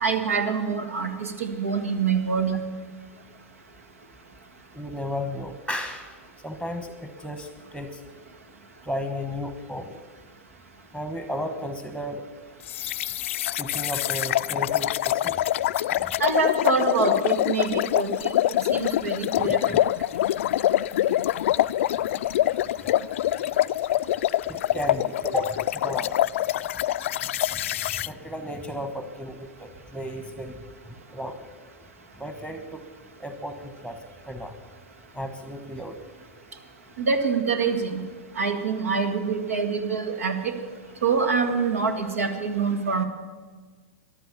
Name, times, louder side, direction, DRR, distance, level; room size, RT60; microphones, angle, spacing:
voice 1, 0.0-2.6 16.2-18.1 18.7-19.6 37.0-38.0 38.4-40.5 41.0-43.0, right 5 dB, 80° right, 7 dB, 1.9 m, -25 dB
voice 2, 4.7-8.0 8.8-10.0 10.9-12.3 13.6-15.6 16.0-16.1 19.4-19.8 24.5-25.6 25.8-26.2 27.1-30.6 31.1-31.5 32.2-32.9 33.2-34.5 35.1-36.0, equal, 5° right, 7 dB, 1.2 m, -34 dB
sound 1, 12.7-28.1, left 13 dB, 65° left, 0.3 m, -25 dB
14.0 x 11.5 x 7.0 m, 1.4 s
hypercardioid pair, 105°, 7 cm